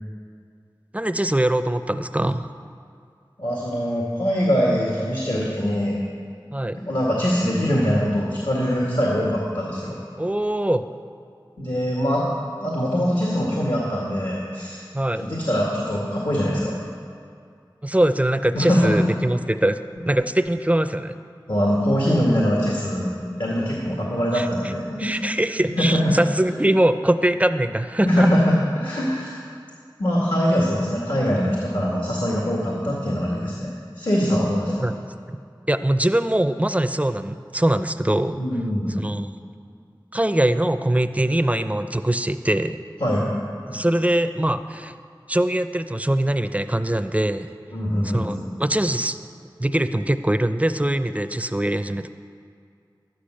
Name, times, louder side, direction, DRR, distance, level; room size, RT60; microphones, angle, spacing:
voice 1, 0.9-2.5 6.5-6.8 10.2-10.8 14.9-15.3 17.8-19.8 20.0-21.2 24.3-24.5 25.0-28.3 34.8-34.9 35.3-35.4 35.7-38.4 39.0-39.3 40.1-42.8 43.7-44.9 45.3-47.5 48.1-49.2 49.6-52.1, right 1 dB, 15° right, 10 dB, 0.5 m, -22 dB
voice 2, 3.4-6.0 6.8-10.0 11.6-12.3 12.6-14.8 15.2-16.8 18.5-19.0 21.5-25.2 25.8-26.1 28.1-29.4 30.0-34.9 38.3-39.0 43.0-43.3 43.7-43.8 47.7-48.4, equal, 70° left, -4 dB, 2.1 m, -23 dB
12.0 x 10.5 x 6.5 m, 2.3 s
wide cardioid pair, 50°, 8 cm